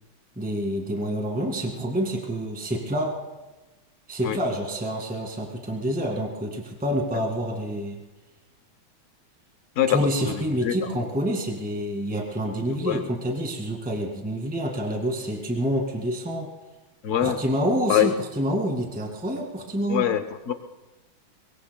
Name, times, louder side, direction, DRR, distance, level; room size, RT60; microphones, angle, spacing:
voice 1, 0.4-3.1 4.1-8.0 9.9-16.5 17.2-20.1, equal, 5° right, 2 dB, 1.9 m, -27 dB
voice 2, 9.8-11.0 12.7-13.0 17.0-17.4 17.9-18.1 19.9-20.5, left 10 dB, 85° left, 9 dB, 0.6 m, -24 dB
22.5 x 22.5 x 2.2 m, 1.1 s
omnidirectional pair, 2.2 m